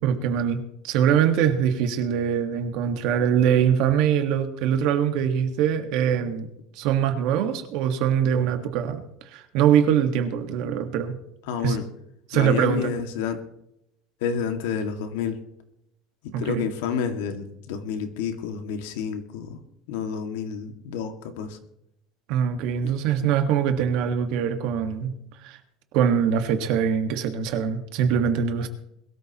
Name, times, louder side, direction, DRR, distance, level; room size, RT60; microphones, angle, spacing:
voice 1, 0.0-6.5 6.7-9.0 9.3-11.2 11.6-11.8 12.3-12.9 16.3-16.6 22.3-25.1 25.4-25.6 25.9-28.7, right 8 dB, 55° right, 7 dB, 1.6 m, -23 dB
voice 2, 11.5-11.9 12.3-13.4 14.2-15.4 16.4-19.6 19.9-21.6 22.8-22.9 23.2-23.3, left 7 dB, 90° left, 6 dB, 2.1 m, -29 dB
21.5 x 13.0 x 3.0 m, 0.79 s
cardioid pair, 175°, 0 cm